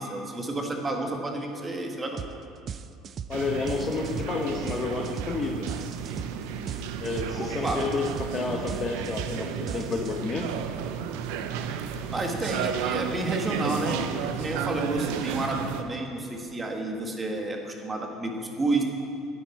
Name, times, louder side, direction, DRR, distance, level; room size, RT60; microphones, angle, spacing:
voice 1, 0.0-2.4 7.3-7.8 12.1-14.0 14.4-18.8, right 2 dB, 20° right, 2 dB, 1.4 m, -30 dB
sound 1, 2.2-2.4 2.7-10.5, right 7 dB, 40° right, 0.4 m, -37 dB
voice 2, 3.3-5.7 7.0-10.5, left 4 dB, 30° left, 4 dB, 0.8 m, -30 dB
sound 2, 3.3-15.8, right 7 dB, 80° right, 0.6 m, -33 dB
10.5 x 9.5 x 4.6 m, 2.7 s
supercardioid pair, 100°, 0 cm